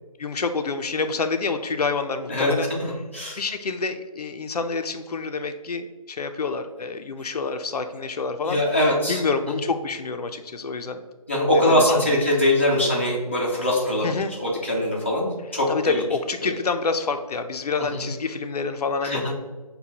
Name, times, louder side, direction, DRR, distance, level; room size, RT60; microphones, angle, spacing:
voice 1, 0.2-2.7 3.4-8.6 9.1-11.0 11.7-12.3 14.0-14.3 15.7-19.3, left 4 dB, 90° left, 7 dB, 0.5 m, -27 dB
voice 2, 2.3-3.4 8.4-9.2 11.3-16.0 16.4-16.6 17.8-18.1 19.0-19.3, left 1 dB, 20° left, -5 dB, 0.4 m, -22 dB
6.6 x 2.2 x 2.7 m, 1.3 s
hypercardioid pair, 180°, 19 cm